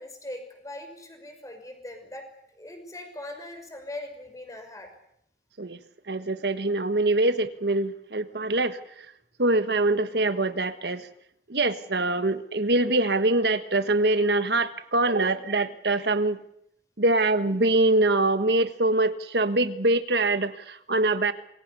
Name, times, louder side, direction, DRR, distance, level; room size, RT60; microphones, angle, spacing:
voice 1, 0.0-2.3 2.6-4.9, left 1 dB, 20° left, 5 dB, 6.0 m, -40 dB
voice 2, 6.1-8.8 9.4-11.1 11.5-16.4 17.0-21.3, right 2 dB, 70° right, 11 dB, 1.4 m, -24 dB
27.0 x 22.0 x 6.9 m, 0.73 s
head